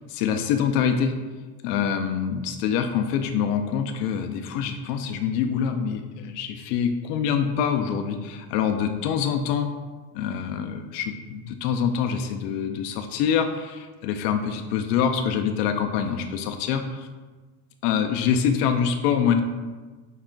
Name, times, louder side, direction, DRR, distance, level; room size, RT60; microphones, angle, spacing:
voice 1, 0.1-1.1 1.6-9.7 10.1-17.1 17.8-19.4, left 7 dB, 80° left, 6 dB, 0.5 m, -25 dB
5.5 x 2.3 x 3.7 m, 1.3 s
cardioid pair, 170°, 47 cm